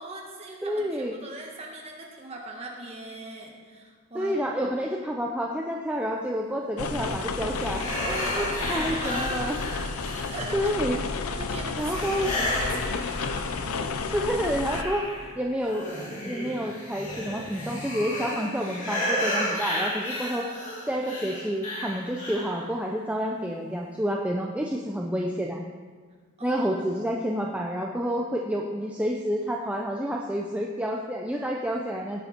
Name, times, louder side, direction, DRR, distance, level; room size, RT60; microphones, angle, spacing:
voice 1, 0.0-4.4 8.1-9.5 10.3-10.7 11.3-13.2 26.4-27.1, right 2 dB, 30° right, -1 dB, 1.7 m, -40 dB
voice 2, 0.6-1.2 4.1-7.9 8.4-9.6 10.5-11.0 11.8-12.3 13.8-15.1 15.4-15.9 16.2-20.5 20.9-25.6 26.4-32.3, equal, 5° right, -1 dB, 0.6 m, -29 dB
sound 1, 6.8-14.8, left 4 dB, 90° left, 0.7 m, -31 dB
sound 2, 7.5-10.7 11.8-13.8 14.2-22.6, left 1 dB, 35° left, 2.4 m, -33 dB
17.5 x 6.8 x 4.5 m, 1.5 s
head